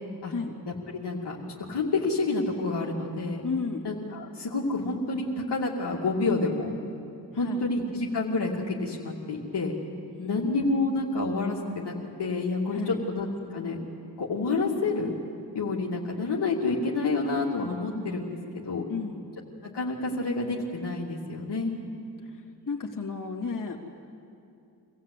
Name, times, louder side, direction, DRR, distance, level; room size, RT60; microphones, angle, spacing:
voice 1, 0.9-1.4 1.7-3.4 3.8-6.7 7.4-9.7 10.2-11.9 12.2-13.8 14.2-15.1 15.5-18.9 19.6-21.7, left 3 dB, 75° left, -4 dB, 2.6 m, -28 dB
voice 2, 3.4-3.8 7.4-7.6 10.2-10.5 12.7-13.0 18.9-19.2 22.7-23.8, left 5 dB, 50° left, -2 dB, 2.9 m, -32 dB
25.0 x 15.5 x 8.4 m, 2.6 s
cardioid pair, 50°, 41 cm